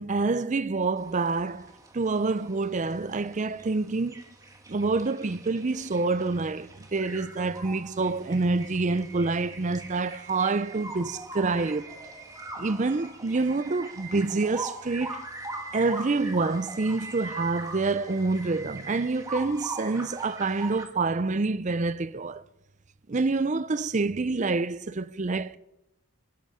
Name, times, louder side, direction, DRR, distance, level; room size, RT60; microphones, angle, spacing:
voice 1, 0.0-4.2 4.7-11.9 12.6-15.2 15.7-22.4 23.1-25.6, right 3 dB, 35° right, 0.5 m, -27 dB
sound 1, 1.0-20.8, right 2 dB, 15° right, 1.7 m, -42 dB
23.5 x 11.0 x 5.0 m
head